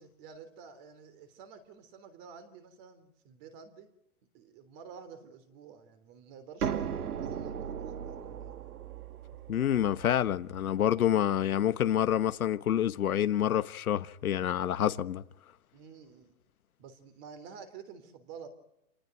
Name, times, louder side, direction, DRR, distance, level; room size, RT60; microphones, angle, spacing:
voice 1, 0.0-3.9 4.3-8.7 15.7-16.3 16.8-18.5, right 6 dB, 25° right, 3.5 m, -50 dB
sound 1, 6.6-12.2, right 8 dB, 85° right, 1.7 m, -38 dB
voice 2, 9.5-15.2, left 10 dB, 70° left, 1.4 m, -27 dB
28.5 x 19.0 x 9.2 m
hypercardioid pair, 160°, 44 cm